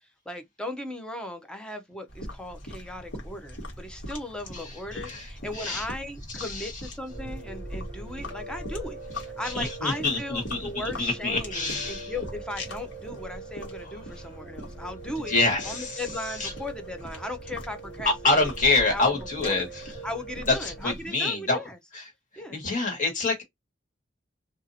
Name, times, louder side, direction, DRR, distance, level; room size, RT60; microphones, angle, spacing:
voice 1, 0.3-15.3 15.6-18.5 18.9-19.1 19.4-19.6 20.0-21.8 22.4-22.6, left 1 dB, 5° left, 0.6 m, -37 dB
sound 1, 2.1-21.1, left 1 dB, 75° left, 1.2 m, -41 dB
voice 2, 4.9-5.3 5.5-5.8 6.4-6.7 9.4-12.1 15.3-16.0 16.4-16.5 18.0-19.9 20.5-21.6 21.9-22.0 22.5-23.4, left 3 dB, 45° left, 1.6 m, -26 dB
Piano, 7.1-20.8, right 3 dB, 25° right, 1.2 m, -43 dB
2.7 x 2.4 x 2.6 m
head